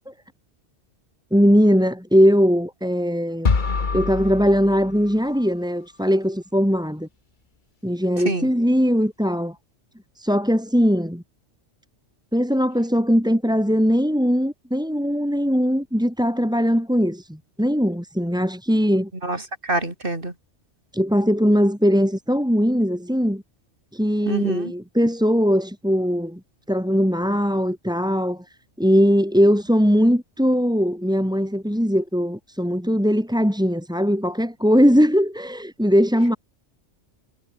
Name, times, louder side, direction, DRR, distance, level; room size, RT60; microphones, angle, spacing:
voice 1, 1.3-3.5 3.9-7.1 7.8-9.6 10.2-11.2 12.3-19.4 20.9-23.4 23.9-26.4 26.7-28.4 28.8-36.4, equal, 5° right, 5.1 m, -20 dB
sound 1, 3.4-5.5, left 4 dB, 45° left, 1.6 m, -25 dB
voice 2, 19.7-20.3 24.3-24.7, right 2 dB, 50° right, 4.6 m, -25 dB
omnidirectional pair, 1.2 m